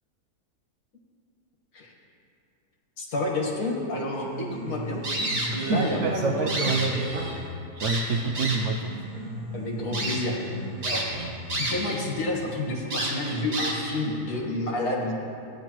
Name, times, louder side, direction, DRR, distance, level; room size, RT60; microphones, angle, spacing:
voice 1, 3.0-5.0 5.5-7.2 9.5-10.5 10.8-11.1 11.5-15.1, left 2 dB, 65° left, -2 dB, 2.1 m, -29 dB
Piano, 3.9-11.9, right 1 dB, 55° right, 1.8 m, -37 dB
sound 1, 5.0-6.0 6.3-7.4 7.8-8.8 9.4-9.5 9.9-10.2 10.8-12.0 12.3-12.4 12.9-14.0, right 1 dB, 90° right, 2.6 m, -30 dB
voice 2, 5.7-7.3 7.8-8.9, right 4 dB, 70° right, 3 dB, 0.7 m, -27 dB
15.5 x 10.5 x 3.0 m, 2.5 s
omnidirectional pair, 1.7 m